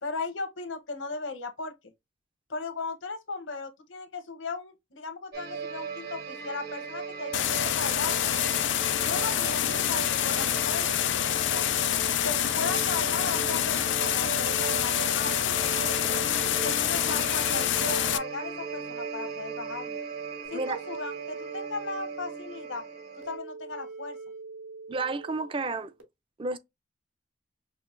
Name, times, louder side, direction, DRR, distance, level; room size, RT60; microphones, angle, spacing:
voice 1, 0.0-1.7 2.5-8.3 9.0-11.8 12.2-16.2 16.6-20.0 20.5-22.8 23.3-24.2, left 4 dB, 85° left, 0.9 m, -37 dB
sound 1, 5.3-23.4, right 6 dB, 55° right, 1.1 m, -37 dB
sound 2, 7.3-18.2, left 11 dB, 70° left, 0.4 m, -27 dB
sound 3, 20.4-26.0, right 4 dB, 90° right, 1.3 m, -44 dB
voice 2, 24.9-25.9 26.4-26.6, right 3 dB, 25° right, 0.4 m, -31 dB
5.7 x 2.1 x 2.5 m
head